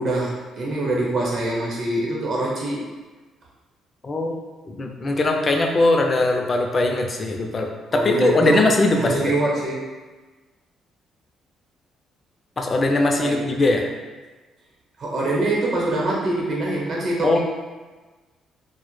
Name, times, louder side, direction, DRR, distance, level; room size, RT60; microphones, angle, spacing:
voice 1, 0.0-2.9 7.9-8.6 9.0-9.9 13.2-13.4 15.0-17.4, right 2 dB, 55° right, -4 dB, 0.8 m, -24 dB
voice 2, 4.0-4.3 4.7-9.3 12.6-13.9 17.2-17.4, left 2 dB, 35° left, 3 dB, 0.3 m, -20 dB
2.1 x 2.0 x 3.0 m, 1.3 s
cardioid pair, 90°, 0 cm